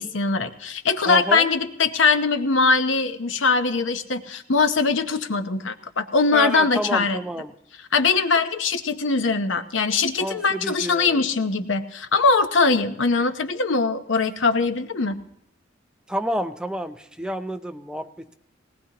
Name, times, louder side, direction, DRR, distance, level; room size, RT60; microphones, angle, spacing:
voice 1, 0.0-7.2 7.9-15.2, left 4 dB, 70° left, 9 dB, 0.8 m, -21 dB
voice 2, 1.1-1.5 6.3-7.5 10.2-11.2 16.1-18.3, equal, 5° right, 8 dB, 0.5 m, -29 dB
19.0 x 18.5 x 2.9 m, 0.74 s
head